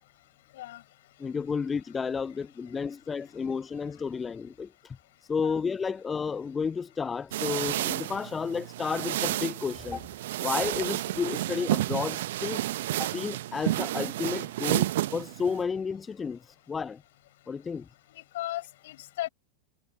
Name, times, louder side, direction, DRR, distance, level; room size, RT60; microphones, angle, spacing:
voice 1, 1.2-5.0 5.3-10.0 10.4-12.6 13.0-14.9 15.1-17.0 17.5-17.9, left 5 dB, 15° left, 0.8 m, -32 dB
sound 1, 7.3-15.6, right 15 dB, 55° right, 1.3 m, -31 dB
voice 2, 18.1-19.3, left 15 dB, 55° left, 7.4 m, -36 dB
figure-of-eight pair, 90°, 0 cm